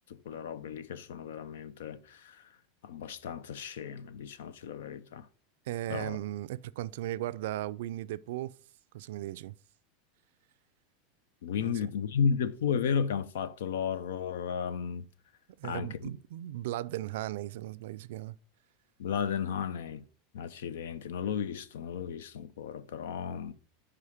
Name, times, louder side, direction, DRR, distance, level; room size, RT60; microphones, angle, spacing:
voice 1, 0.1-2.4 2.8-5.3 5.9-6.2 11.4-15.0 15.6-16.0 19.0-20.0 20.3-23.5, left 7 dB, 90° left, 0.5 m, -34 dB
voice 2, 5.7-8.5 8.9-9.5 11.6-11.8 15.6-18.4, right 14 dB, 75° right, 0.3 m, -37 dB
4.9 x 4.9 x 5.6 m
supercardioid pair, 140°, 0 cm